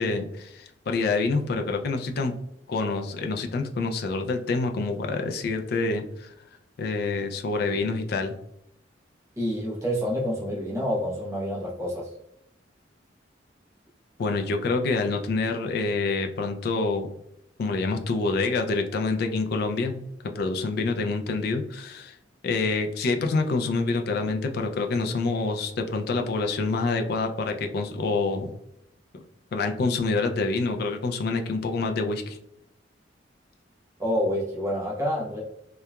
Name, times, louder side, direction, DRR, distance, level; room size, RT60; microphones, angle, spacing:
voice 1, 0.0-2.3 2.7-6.3 6.8-8.4 14.2-17.1 17.6-22.2 22.4-28.5 29.5-32.4, left 3 dB, 55° left, 5 dB, 0.3 m, -27 dB
voice 2, 9.4-12.1 34.0-35.4, equal, 15° right, -5 dB, 0.8 m, -28 dB
2.8 x 2.2 x 2.2 m, 0.78 s
head